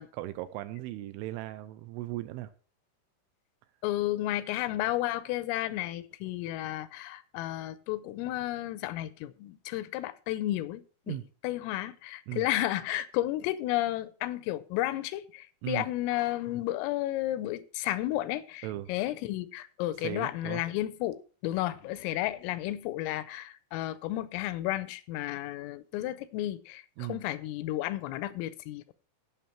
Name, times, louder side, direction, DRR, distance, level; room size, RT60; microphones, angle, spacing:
voice 1, 0.0-2.5 11.1-11.2 12.3-12.5 15.6-15.9 18.6-18.9 20.0-20.6 27.0-27.2, right 15 dB, 80° right, 3.0 m, -37 dB
voice 2, 3.8-11.2 11.4-28.9, left 15 dB, 85° left, 3.2 m, -32 dB
16.0 x 6.0 x 4.3 m
omnidirectional pair, 6.0 m